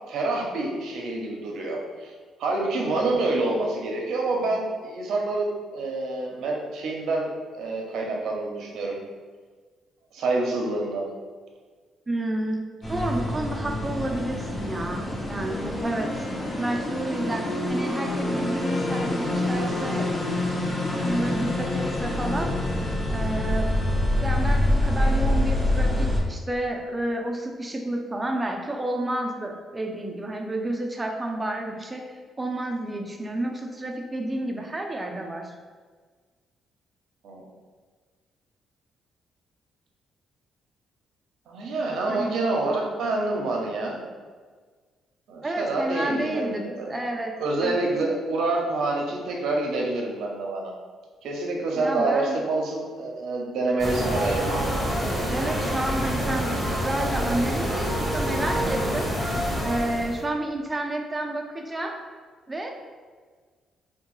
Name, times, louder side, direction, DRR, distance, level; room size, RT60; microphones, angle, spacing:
voice 1, 0.1-2.1 2.4-9.0 10.1-11.0 37.2-37.4 41.5-44.0 45.3-46.9 47.4-50.7 51.2-54.4, right 2 dB, 75° right, -1 dB, 0.6 m, -27 dB
voice 2, 12.1-12.6 12.9-16.3 16.6-20.1 20.9-22.5 23.1-23.7 24.2-35.5 42.1-42.3 45.4-47.3 47.6-47.9 51.7-52.4 55.3-56.5 56.8-59.1 59.6-62.0 62.5-62.7, right 1 dB, 20° right, 2 dB, 0.4 m, -30 dB
sound 1, 12.8-26.2, left 1 dB, 35° left, 0.8 m, -26 dB
Wind instrument woodwind instrument, 15.4-23.2, left 1 dB, 50° left, 0.4 m, -37 dB
sound 2, 53.8-60.2, equal, 10° left, 0.9 m, -26 dB
3.5 x 2.2 x 3.0 m, 1.5 s
cardioid pair, 90°, 0 cm